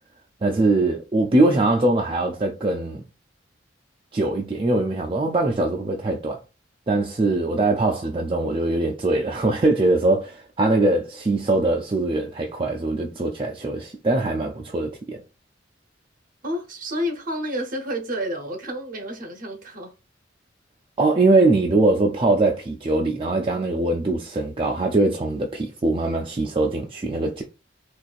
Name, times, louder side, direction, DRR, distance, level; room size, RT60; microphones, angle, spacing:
voice 1, 0.4-3.0 4.1-6.4 6.9-15.2 21.0-27.4, right 2 dB, 30° right, 0.4 m, -22 dB
voice 2, 16.4-19.9, equal, 45° right, 0.9 m, -30 dB
4.1 x 2.4 x 2.4 m
head